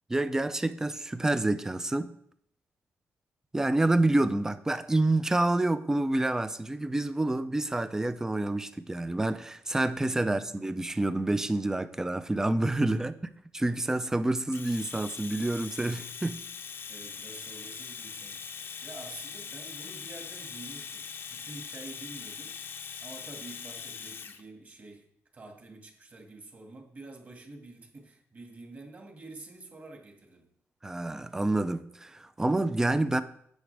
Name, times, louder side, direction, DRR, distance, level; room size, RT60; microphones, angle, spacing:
voice 1, 0.1-2.1 3.5-13.1 13.5-16.4 30.8-33.2, right 2 dB, 10° right, 12 dB, 0.5 m, -28 dB
Domestic sounds home sounds, 14.5-24.4, left 6 dB, 45° left, 0.7 m, -41 dB
voice 2, 16.9-25.1 25.3-30.5 32.6-32.9, right 2 dB, 35° right, 2 dB, 2.0 m, -48 dB
12.5 x 8.5 x 3.4 m, 0.67 s
wide cardioid pair, 160°, 5 cm